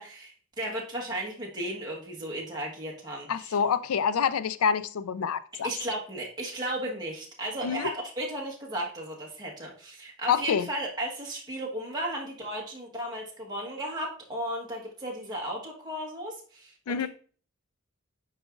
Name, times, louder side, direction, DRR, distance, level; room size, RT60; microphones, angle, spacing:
voice 1, 0.0-3.6 5.6-17.1, right 1 dB, 20° right, -3 dB, 1.3 m, -35 dB
voice 2, 3.3-5.7 7.6-7.9 10.3-10.7 16.9-17.1, left 7 dB, 85° left, 16 dB, 0.4 m, -27 dB
8.8 x 4.9 x 2.5 m, 0.43 s
head